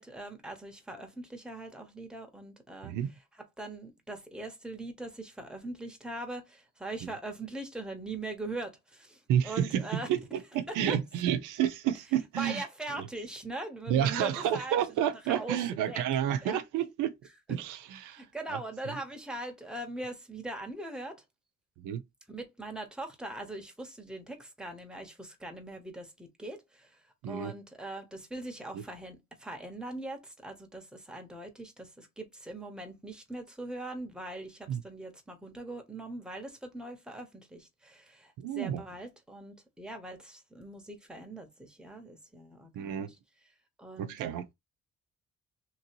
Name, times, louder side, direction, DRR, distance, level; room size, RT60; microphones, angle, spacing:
voice 1, 0.0-2.9 3.6-10.1 10.7-11.0 12.4-14.8 15.3-16.0 16.4-16.6 18.1-21.2 22.3-27.0 27.3-43.2 43.8-44.1, right 2 dB, 5° right, 1.1 m, -41 dB
voice 2, 9.3-12.6 13.0-13.1 13.9-17.1 17.5-18.6 18.9-19.0 21.8-22.0 27.2-27.5 28.7-28.8 34.7-34.8 38.4-38.8 42.8-43.1 44.0-44.5, right 10 dB, 90° right, 0.6 m, -30 dB
3.0 x 2.7 x 2.8 m
cardioid pair, 90°, 30 cm